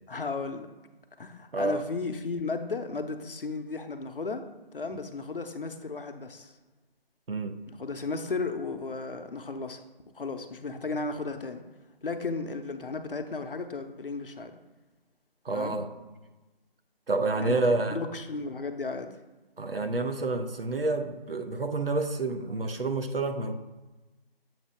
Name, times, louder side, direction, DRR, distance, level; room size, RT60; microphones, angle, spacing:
voice 1, 0.1-0.7 1.2-4.5 4.7-6.5 7.7-9.8 10.1-11.6 12.0-14.6 15.5-15.8 17.4-17.6 17.9-19.1, left 3 dB, 60° left, 7 dB, 0.7 m, -34 dB
voice 2, 15.4-15.9 17.1-18.0 19.6-23.5, right 3 dB, 70° right, 7 dB, 0.7 m, -28 dB
7.4 x 2.8 x 5.5 m, 1.2 s
figure-of-eight pair, 160°, 30 cm